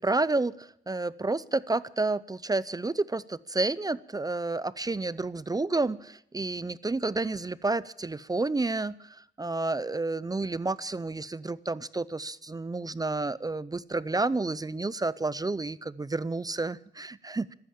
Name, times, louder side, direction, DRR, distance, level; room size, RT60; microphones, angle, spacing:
voice 1, 0.0-17.5, right 3 dB, 20° right, 18 dB, 0.5 m, -30 dB
14.0 x 12.5 x 7.4 m, 0.73 s
cardioid pair, 75°, 19 cm